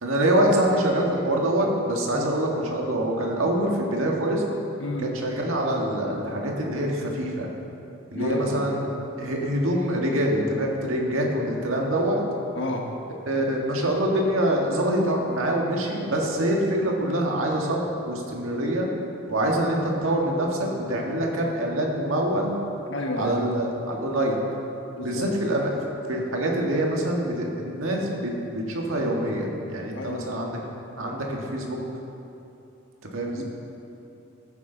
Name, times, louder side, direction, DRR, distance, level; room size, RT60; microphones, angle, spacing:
voice 1, 0.0-4.4 5.0-7.5 8.1-8.8 9.2-12.2 13.3-18.9 19.3-22.6 23.2-24.4 25.0-25.8 26.1-30.6 31.0-31.8 33.1-33.4, right 1 dB, 90° right, -1 dB, 1.8 m, -25 dB
voice 2, 8.1-8.7 12.5-12.9 22.9-23.4 25.0-25.3 29.9-30.4 33.3-33.4, left 2 dB, 65° left, 1 dB, 1.3 m, -31 dB
15.0 x 9.1 x 4.0 m, 2.8 s
head